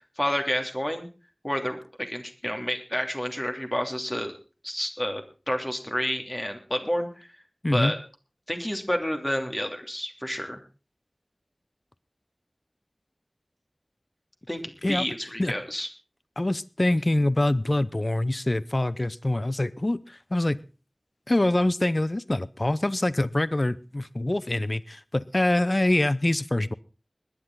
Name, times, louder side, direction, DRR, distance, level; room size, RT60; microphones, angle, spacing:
voice 1, 0.2-1.1 1.4-4.3 4.6-7.1 7.7-8.0 8.5-10.6 14.5-15.9, equal, 25° left, 4 dB, 2.9 m, -29 dB
voice 2, 16.4-20.6 21.3-26.7, left 1 dB, 45° left, 17 dB, 0.7 m, -25 dB
21.5 x 10.0 x 3.9 m, 0.33 s
wide cardioid pair, 40°, 0 cm